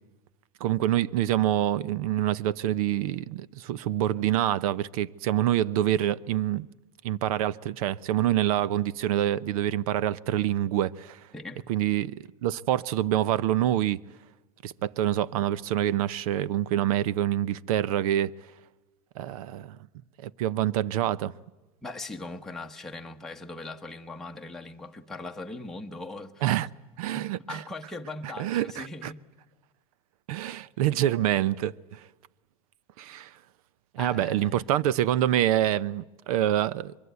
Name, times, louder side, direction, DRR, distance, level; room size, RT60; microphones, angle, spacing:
voice 1, 0.6-6.7 7.0-11.2 11.7-12.1 12.4-14.0 14.6-18.3 19.2-19.8 20.2-21.3 26.4-26.7 27.0-27.6 28.4-29.1 30.3-32.0 33.0-33.3 33.9-37.0, right 12 dB, 75° right, 0.8 m, -26 dB
voice 2, 21.8-26.6 27.1-29.2 34.0-34.6, left 2 dB, ahead, 1.1 m, -40 dB
24.5 x 22.5 x 8.3 m
supercardioid pair, 150°, 19 cm